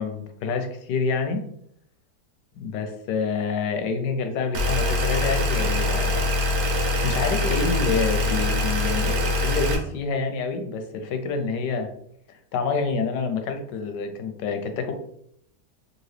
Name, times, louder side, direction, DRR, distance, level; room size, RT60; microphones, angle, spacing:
voice 1, 0.0-1.5 2.5-6.2 7.0-11.9 12.3-14.9, left 5 dB, 85° left, 6 dB, 1.3 m, -27 dB
sound 1, 4.5-9.8, left 1 dB, 65° right, 1.1 m, -23 dB
3.8 x 2.7 x 3.2 m, 0.70 s
omnidirectional pair, 1.8 m